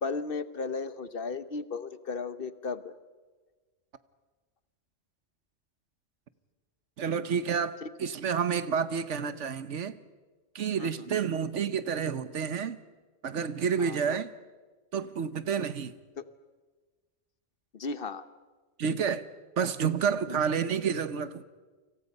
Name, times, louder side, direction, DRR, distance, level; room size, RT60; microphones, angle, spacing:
voice 1, 0.0-2.9 7.8-7.9 10.8-11.2 13.8-14.2 16.2-16.3 17.7-18.3 20.3-20.4, left 4 dB, 55° left, 1.1 m, -35 dB
voice 2, 7.0-10.0 10.5-12.8 13.2-14.3 14.9-15.9 18.8-19.2 19.6-21.5, right 7 dB, 80° right, 1.3 m, -29 dB
29.5 x 25.5 x 5.4 m
omnidirectional pair, 1.2 m